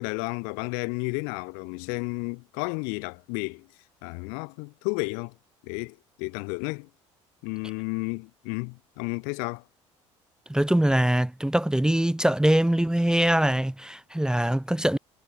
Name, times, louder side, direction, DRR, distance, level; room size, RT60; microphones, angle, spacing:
voice 1, 0.0-3.7 4.0-5.3 5.6-6.9 7.4-9.6, left 40 dB or more, 65° left, 3.2 m, -32 dB
voice 2, 10.5-15.0, right 1 dB, 5° right, 1.1 m, -23 dB
figure-of-eight pair, 55°, 16 cm